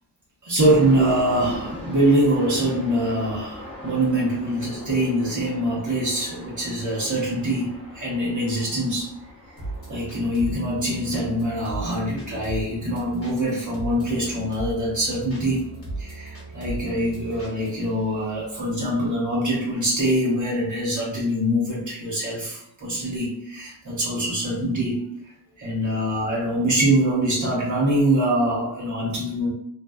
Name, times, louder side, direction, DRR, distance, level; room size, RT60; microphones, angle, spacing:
voice 1, 0.4-9.1 9.9-15.6 16.0-25.0 25.6-29.5, right 1 dB, 50° right, -5 dB, 0.9 m, -24 dB
sound 1, 0.6-19.1, left 1 dB, 15° left, 0.6 m, -42 dB
sound 2, 9.6-17.9, right 2 dB, 35° left, 1.0 m, -37 dB
2.6 x 2.2 x 2.3 m, 0.72 s
wide cardioid pair, 160°, 40 cm